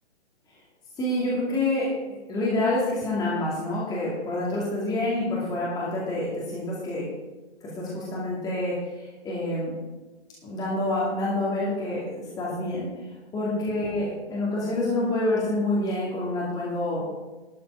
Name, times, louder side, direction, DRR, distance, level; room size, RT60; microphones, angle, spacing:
voice 1, 1.0-7.0 7.8-9.8 10.4-12.9 13.3-17.1, left 1 dB, 10° left, -7 dB, 2.5 m, -27 dB
12.0 x 8.3 x 4.8 m, 1.1 s
figure-of-eight pair, 135°, 33 cm